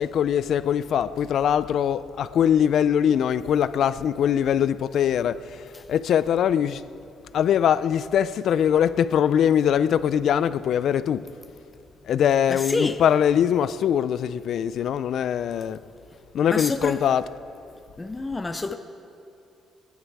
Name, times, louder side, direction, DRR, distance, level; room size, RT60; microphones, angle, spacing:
voice 1, 0.0-6.8 7.3-11.3 12.1-15.8 16.3-17.4, left 9 dB, 70° left, 0.4 m, -22 dB
voice 2, 12.5-13.0 16.5-17.0 18.0-18.7, left 3 dB, 20° left, 0.6 m, -27 dB
20.0 x 10.5 x 4.7 m
cardioid pair, 90°, 0 cm